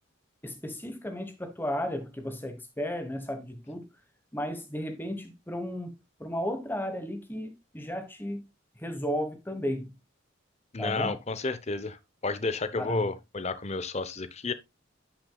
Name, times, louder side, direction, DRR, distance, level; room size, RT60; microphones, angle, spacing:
voice 1, 0.4-3.9 4.3-5.9 6.2-8.5 8.8-9.9 10.8-11.1 12.7-13.1, equal, 10° left, 1.2 m, -34 dB
voice 2, 10.7-12.0 12.2-14.5, left 3 dB, 30° left, 0.7 m, -31 dB
9.7 x 6.1 x 2.3 m
head